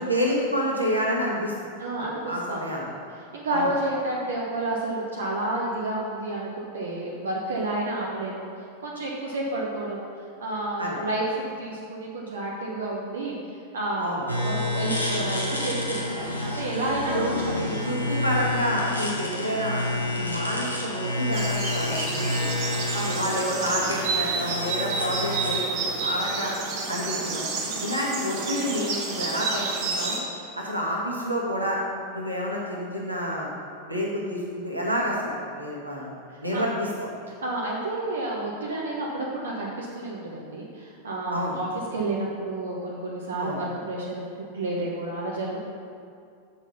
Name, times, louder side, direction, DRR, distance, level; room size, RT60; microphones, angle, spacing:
voice 1, 0.0-1.7 2.2-2.9 3.5-3.7 10.8-11.0 14.0-14.2 17.1-19.9 20.2-22.5 23.1-26.5 26.9-27.4 27.8-30.2 30.5-31.8 32.1-33.5 33.9-36.1 36.4-37.1 41.3-41.5 43.4-43.6, equal, 85° right, -3 dB, 1.6 m, -28 dB
voice 2, 1.8-3.0 3.3-8.5 8.8-10.0 10.4-13.4 13.7-17.6 20.0-20.3 22.7-23.2 26.8-27.0 27.6-27.9 36.3-36.6 37.3-45.6, right 2 dB, 65° right, -3 dB, 1.1 m, -30 dB
sound 1, 14.3-25.6, left 2 dB, 85° left, 1.2 m, -29 dB
sound 2, 21.3-30.2, right 4 dB, 45° right, 1.4 m, -30 dB
7.3 x 6.2 x 5.6 m, 2.4 s
figure-of-eight pair, 90°, 0 cm